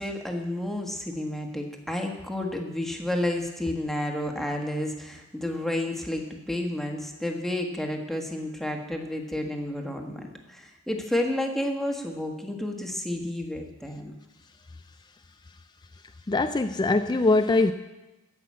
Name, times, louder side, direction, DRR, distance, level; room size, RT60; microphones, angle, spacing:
voice 1, 0.0-14.1, left 1 dB, ahead, 1 dB, 1.4 m, -31 dB
voice 2, 16.3-17.7, left 3 dB, 20° left, 8 dB, 0.4 m, -22 dB
14.0 x 5.9 x 8.4 m, 1.0 s
head